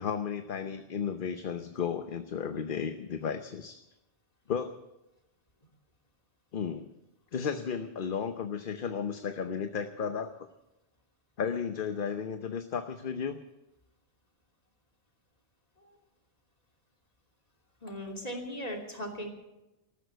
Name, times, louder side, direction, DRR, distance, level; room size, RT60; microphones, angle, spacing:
voice 1, 0.0-3.8 4.5-4.8 6.5-6.9 7.3-10.3 11.4-13.4, left 6 dB, 55° left, 8 dB, 1.0 m, -34 dB
voice 2, 17.8-19.3, equal, 35° left, 2 dB, 3.0 m, -38 dB
14.0 x 13.0 x 8.0 m, 0.96 s
omnidirectional pair, 1.1 m